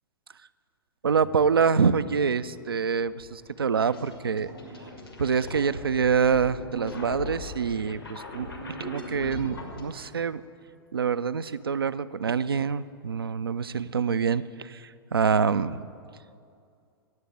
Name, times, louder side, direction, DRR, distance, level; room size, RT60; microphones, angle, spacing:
voice 1, 1.0-4.5 5.2-8.5 8.8-10.4 10.9-15.8, right 6 dB, 80° right, 15 dB, 0.4 m, -26 dB
sound 1, 2.4-9.8, left 1 dB, 90° left, 2.0 m, -39 dB
9.4 x 8.1 x 9.0 m, 2.4 s
figure-of-eight pair, 100°, 12 cm